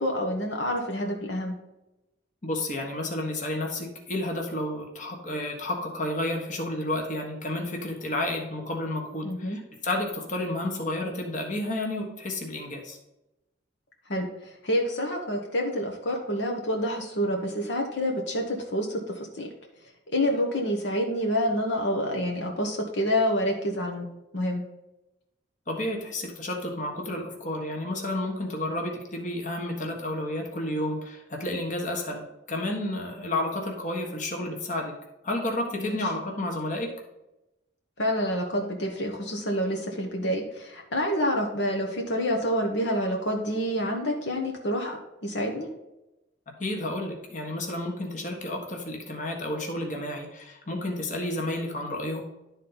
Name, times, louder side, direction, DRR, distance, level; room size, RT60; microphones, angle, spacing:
voice 1, 0.0-1.6 9.2-9.6 14.1-19.5 20.1-24.1 24.3-24.6 35.8-36.0 38.0-45.7, equal, 65° left, 0 dB, 1.3 m, -28 dB
voice 2, 2.4-13.0 25.7-35.0 35.2-36.9 46.6-52.2, left 1 dB, 40° left, 1 dB, 1.6 m, -31 dB
12.0 x 4.2 x 4.0 m, 0.94 s
head